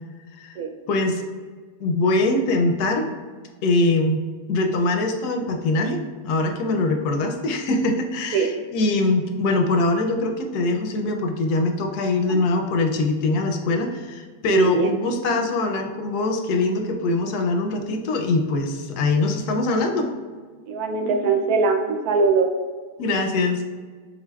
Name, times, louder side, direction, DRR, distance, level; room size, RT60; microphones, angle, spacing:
voice 1, 0.9-1.2 1.8-3.1 3.6-4.2 4.5-20.1 23.0-23.6, left 2 dB, 85° left, 4 dB, 1.2 m, -23 dB
voice 2, 14.5-14.9 20.7-22.5, right 4 dB, 75° right, 4 dB, 1.1 m, -21 dB
4.7 x 3.9 x 2.2 m, 1.5 s
omnidirectional pair, 1.6 m